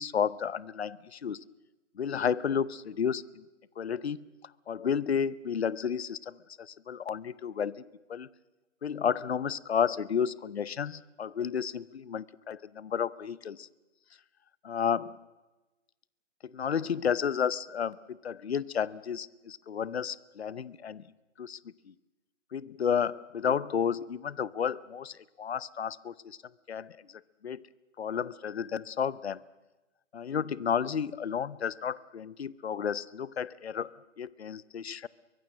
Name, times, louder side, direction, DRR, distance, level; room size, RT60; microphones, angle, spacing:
voice 1, 0.0-1.4 2.0-3.4 3.8-4.3 4.7-7.7 8.1-8.3 8.8-13.7 14.6-15.2 16.4-21.0 21.4-21.6 22.5-26.4 26.7-27.0 27.4-27.6 28.0-29.4 30.1-33.9 34.2-35.1, left 7 dB, 60° left, 20 dB, 0.7 m, -32 dB
23.5 x 20.5 x 7.6 m, 1.1 s
hypercardioid pair, 180°, 37 cm